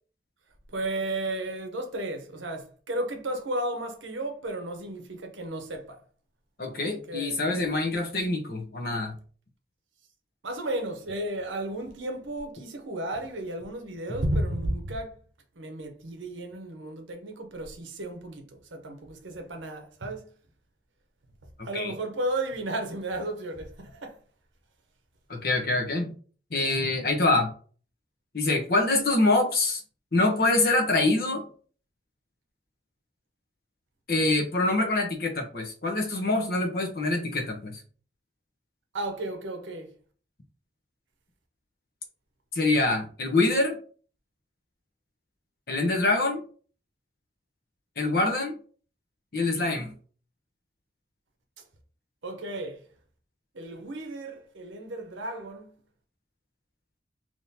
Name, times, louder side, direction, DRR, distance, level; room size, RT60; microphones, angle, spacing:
voice 1, 0.7-6.0 6.8-7.7 10.4-15.1 15.6-20.3 21.6-24.2 38.9-39.9 52.2-52.8 53.5-55.7, right 1 dB, 90° right, 0.8 m, -33 dB
voice 2, 6.6-9.2 21.7-21.9 25.3-26.1 26.5-27.5 28.3-29.8 30.1-31.4 34.1-37.8 42.5-43.8 45.7-46.4 48.0-48.5 49.3-49.9, left 2 dB, 55° left, 0.9 m, -25 dB
3.7 x 3.0 x 2.7 m
head